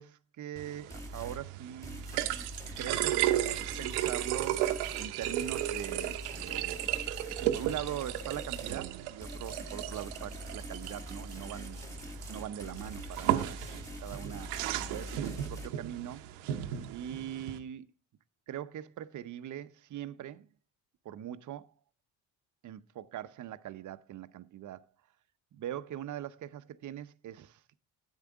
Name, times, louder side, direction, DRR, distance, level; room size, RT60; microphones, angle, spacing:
voice 1, 0.0-2.1 2.8-3.5 3.8-6.8 7.4-11.8 12.3-13.6 14.0-14.5 14.9-16.3 16.9-17.9 18.5-20.5 21.0-21.7 22.6-24.9 25.5-27.6, right 11 dB, 50° right, 0.7 m, -41 dB
sound 1, 0.6-17.6, right 13 dB, 80° right, 0.9 m, -35 dB
sound 2, 0.9-1.4 1.8-8.8 9.2-15.7, left 1 dB, 10° left, 1.5 m, -44 dB
10.0 x 8.2 x 3.6 m
hypercardioid pair, 65°, 39 cm